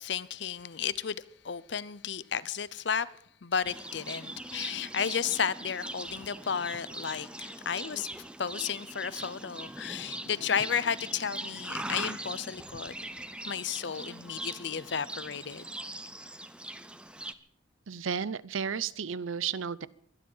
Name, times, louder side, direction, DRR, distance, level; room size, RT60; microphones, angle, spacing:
voice 1, 0.0-3.1 3.4-8.1 8.4-13.0 13.5-15.6, left 7 dB, 60° left, 0.7 m, -33 dB
Livestock farm animals working animals, 3.6-17.3, right 1 dB, 5° right, 0.6 m, -41 dB
voice 2, 17.9-19.9, right 7 dB, 85° right, 0.6 m, -33 dB
23.5 x 10.5 x 5.6 m
head